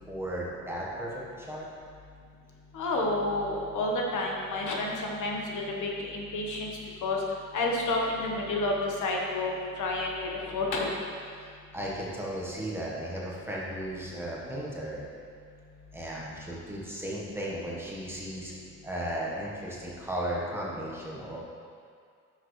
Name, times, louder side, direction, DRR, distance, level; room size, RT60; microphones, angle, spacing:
voice 1, 0.1-1.7 11.4-15.0 15.9-18.6 18.8-21.4, right 1 dB, 10° right, -5 dB, 1.3 m, -35 dB
voice 2, 2.7-6.7 7.0-7.2 7.5-9.5 9.8-10.9, left 2 dB, 80° left, -1 dB, 1.3 m, -30 dB
10.0 x 6.4 x 3.2 m, 2.2 s
wide cardioid pair, 160°, 30 cm